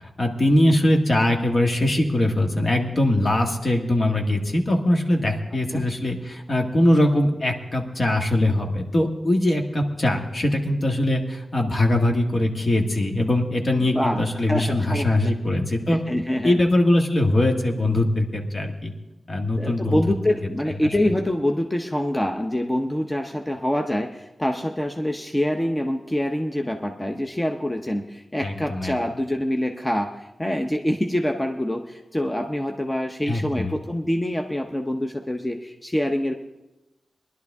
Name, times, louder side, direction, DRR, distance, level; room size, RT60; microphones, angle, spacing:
voice 1, 0.2-16.0 16.4-18.9 19.3-20.0 28.4-28.9 33.3-33.7, left 1 dB, 50° left, 2 dB, 1.6 m, -21 dB
voice 2, 13.7-14.2 14.5-15.3 15.9-16.6 19.6-36.3, left 1 dB, 15° left, 4 dB, 0.8 m, -25 dB
20.0 x 11.5 x 3.6 m, 1.0 s
wide cardioid pair, 80°, 0 cm